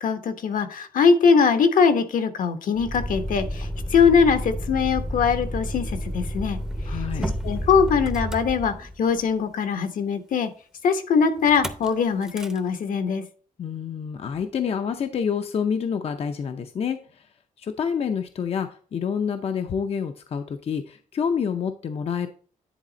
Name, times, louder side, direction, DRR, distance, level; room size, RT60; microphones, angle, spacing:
voice 1, 0.0-6.6 7.2-10.5 10.8-13.2, left 6 dB, 75° left, 9 dB, 1.1 m, -21 dB
Motor vehicle (road), 2.8-9.2 11.4-11.9 12.2-12.6, equal, 5° right, 0.6 m, -30 dB
voice 2, 6.9-7.3 13.6-17.3 17.6-22.3, left 7 dB, 45° left, 8 dB, 0.5 m, -28 dB
10.0 x 4.1 x 3.9 m, 0.43 s
wide cardioid pair, 175°, 14 cm